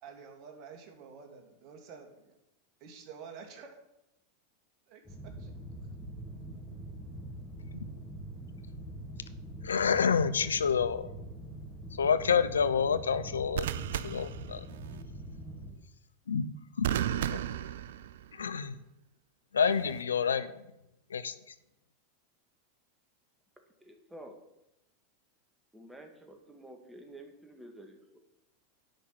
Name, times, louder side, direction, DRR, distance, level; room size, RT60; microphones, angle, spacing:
voice 1, 0.0-2.4 2.8-3.8 4.9-5.5, right 6 dB, 50° right, 2 dB, 2.5 m, -49 dB
sound 1, 5.0-15.7, right 1 dB, 10° left, 3.5 m, -44 dB
voice 2, 9.6-11.1 12.0-13.7 14.0-14.6 16.3-16.5 16.8-16.9 17.3-17.4 18.3-18.8 19.5-20.5 21.1-21.3, left 6 dB, 85° left, 14 dB, 0.6 m, -28 dB
sound 2, 9.7-10.0 13.5-15.0 16.8-18.5 19.7-20.0, right 11 dB, 70° right, 0.5 m, -35 dB
voice 3, 23.8-24.4 25.7-28.2, right 1 dB, 10° right, 4 dB, 2.3 m, -50 dB
10.5 x 5.7 x 8.7 m, 0.87 s
hypercardioid pair, 100°, 0 cm